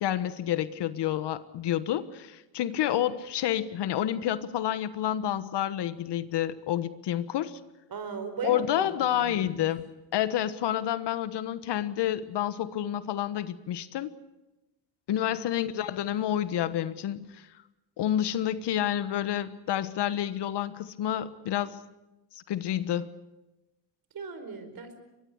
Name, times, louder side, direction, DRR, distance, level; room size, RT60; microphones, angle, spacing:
voice 1, 0.0-7.6 8.4-9.9 10.1-14.1 15.1-17.5 18.0-21.8 22.5-23.1, left 11 dB, 65° left, 14 dB, 1.4 m, -29 dB
voice 2, 7.9-8.9 9.1-9.7 24.1-25.0, right 5 dB, 50° right, 10 dB, 5.0 m, -37 dB
23.5 x 20.5 x 8.1 m, 1.0 s
supercardioid pair, 80°, 45 cm